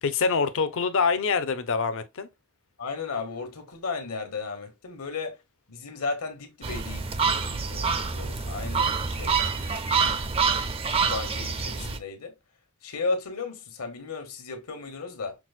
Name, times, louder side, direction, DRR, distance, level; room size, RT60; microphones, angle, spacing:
voice 1, 0.0-2.3, left 5 dB, 60° left, 0.6 m, -25 dB
voice 2, 2.8-5.4 5.7-9.4 11.1-12.3 12.8-15.4, left 4 dB, 80° left, 1.2 m, -34 dB
sound 1, 6.6-12.0, right 5 dB, 25° right, 0.4 m, -27 dB
5.9 x 2.1 x 2.4 m
head